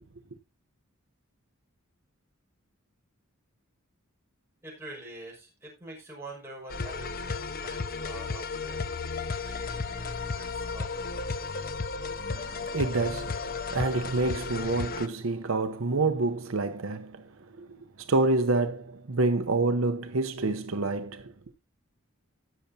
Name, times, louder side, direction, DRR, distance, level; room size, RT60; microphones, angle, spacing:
voice 1, 4.6-8.8 9.4-11.2 14.0-14.1, right 1 dB, 10° right, 5.8 m, -45 dB
sound 1, 6.7-15.1, left 4 dB, 45° left, 0.7 m, -34 dB
voice 2, 12.0-13.4 13.7-17.3 17.6-21.3, right 2 dB, 65° right, 0.8 m, -28 dB
18.5 x 6.8 x 2.7 m
head